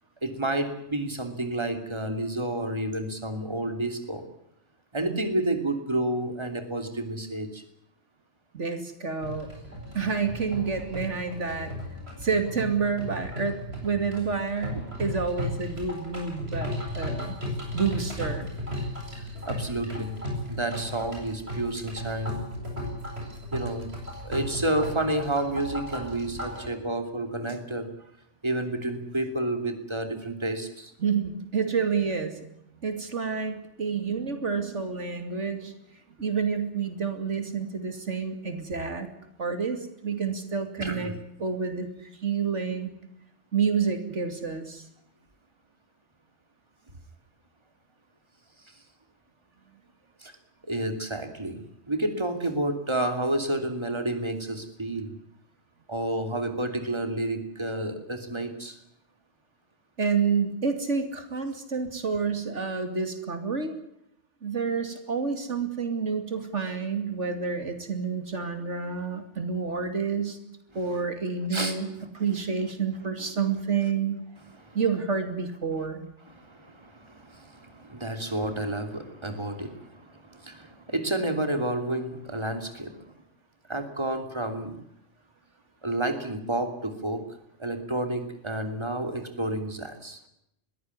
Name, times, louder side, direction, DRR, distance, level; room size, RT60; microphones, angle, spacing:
voice 1, 0.2-4.2 4.9-7.6 19.1-20.1 20.5-22.4 23.5-23.9 24.2-27.9 28.4-30.9 40.8-41.1 48.6-48.8 50.2-50.3 50.6-51.6 51.9-55.1 55.9-58.8 71.5-71.8 73.2-73.3 74.5-74.8 76.3-83.1 83.7-84.8 85.8-87.2 87.6-90.2, right 1 dB, 25° right, 6 dB, 3.0 m, -30 dB
voice 2, 8.5-9.5 9.9-11.7 12.2-17.3 17.7-18.5 31.0-32.4 32.8-35.8 36.2-39.1 39.4-41.1 41.4-42.9 43.5-44.8 60.0-63.7 64.4-70.4 70.7-71.9 72.1-74.2 74.7-76.0, right 5 dB, 80° right, 7 dB, 2.9 m, -29 dB
sound 1, 9.2-26.7, left 1 dB, 60° right, 8.3 m, -35 dB
22.0 x 15.5 x 9.7 m, 0.77 s
omnidirectional pair, 1.2 m